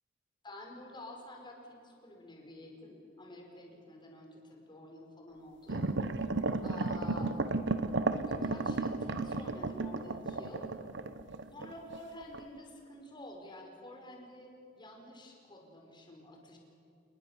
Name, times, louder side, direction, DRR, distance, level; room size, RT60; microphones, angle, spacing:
voice 1, 0.4-5.9 6.6-7.3 7.7-8.0 8.3-10.7 11.5-16.6, left 1 dB, 25° left, 1 dB, 4.9 m, -49 dB
sound 1, 5.7-12.0 12.3-12.4, right 3 dB, 65° right, 1.1 m, -34 dB
29.5 x 20.0 x 7.3 m, 2.7 s
head